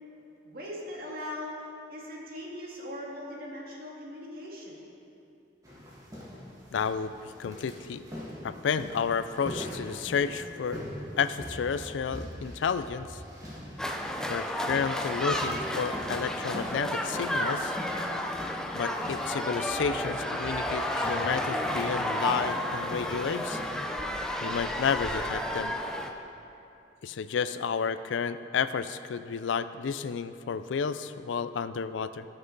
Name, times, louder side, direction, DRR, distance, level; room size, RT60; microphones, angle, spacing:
voice 1, 0.4-4.8, left 1 dB, 50° right, -4 dB, 2.0 m, -40 dB
sound 1, 5.6-23.8, equal, 20° right, 1.8 m, -42 dB
voice 2, 6.7-7.1 7.4-8.1 8.4-10.8 11.2-13.2 14.3-17.8 18.7-23.6 24.4-25.7 27.0-32.3, left 6 dB, 80° left, 13 dB, 0.4 m, -31 dB
sound 2, 13.8-26.1, left 1 dB, 5° left, 0.5 m, -32 dB
18.0 x 6.0 x 3.9 m, 2.8 s
head